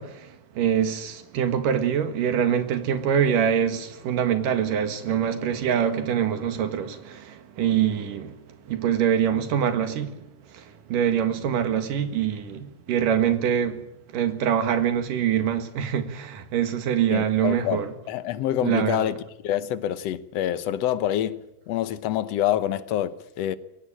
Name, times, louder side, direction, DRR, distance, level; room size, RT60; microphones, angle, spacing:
voice 1, 0.0-8.4 8.7-10.2 10.5-13.8 14.1-17.9 18.6-19.1, right 9 dB, 85° right, 3.4 m, -24 dB
voice 2, 17.1-19.1 19.4-23.6, left 12 dB, 65° left, 1.8 m, -26 dB
22.5 x 18.0 x 8.8 m
omnidirectional pair, 3.7 m